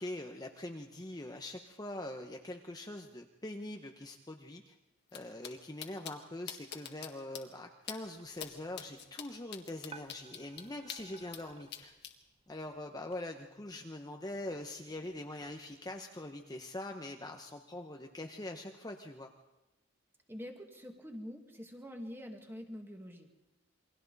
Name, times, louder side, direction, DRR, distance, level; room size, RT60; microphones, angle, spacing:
voice 1, 0.0-4.7 5.1-11.9 12.5-19.3, left 1 dB, 20° left, 3 dB, 0.9 m, -43 dB
sound 1, 5.1-5.2 5.4-5.5 5.8-6.1 6.5-7.1 7.3-7.4 7.9-8.0 8.4-8.5 8.8-11.4 11.7-12.1, left 9 dB, 55° left, 1.7 m, -43 dB
sound 2, 8.1-13.2, right 5 dB, 30° right, 0.9 m, -58 dB
voice 2, 20.3-23.3, equal, 10° right, 3 dB, 2.0 m, -45 dB
28.5 x 22.5 x 4.1 m, 0.99 s
head